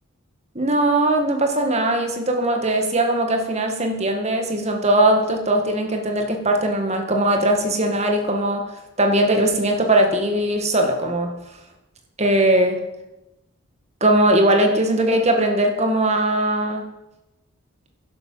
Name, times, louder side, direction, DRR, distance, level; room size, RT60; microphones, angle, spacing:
voice 1, 0.6-8.7 9.0-11.3 12.2-12.8 14.0-16.8, right 1 dB, 30° right, 4 dB, 2.0 m, -20 dB
11.0 x 11.0 x 7.5 m, 0.95 s
head